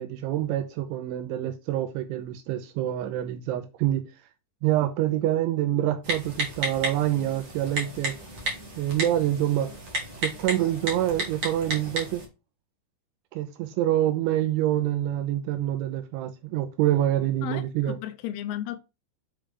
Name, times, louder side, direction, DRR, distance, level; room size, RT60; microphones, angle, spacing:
voice 1, 0.0-4.1 4.6-8.2 8.8-9.7 10.2-12.2 13.3-18.0, right 13 dB, 85° right, 3.1 m, -26 dB
Typing, 6.0-12.2, right 1 dB, 55° right, 1.3 m, -33 dB
voice 2, 17.4-18.8, left 12 dB, 85° left, 2.4 m, -34 dB
7.4 x 5.1 x 3.4 m
omnidirectional pair, 5.5 m